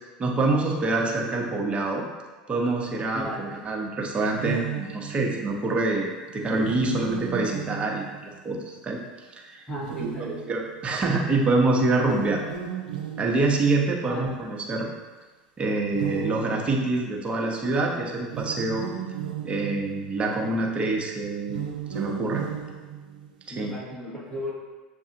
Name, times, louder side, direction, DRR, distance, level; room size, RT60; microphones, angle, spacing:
voice 1, 0.2-2.1 2.5-9.0 9.4-9.7 10.2-12.4 13.2-14.9 15.6-18.9 19.4-21.6 21.9-22.4 23.6-23.7, right 2 dB, 25° right, -1 dB, 0.9 m, -26 dB
voice 2, 3.1-3.6 9.7-10.4 14.0-14.3 23.5-24.5, equal, 25° left, -4 dB, 1.3 m, -35 dB
sound 1, 4.3-5.4 6.5-8.5 9.7-10.8 12.0-14.1 15.9-17.3 18.2-20.2 21.4-23.4, right 9 dB, 85° right, 0.5 m, -35 dB
6.7 x 2.3 x 2.9 m, 1.3 s
hypercardioid pair, 85°, 4 cm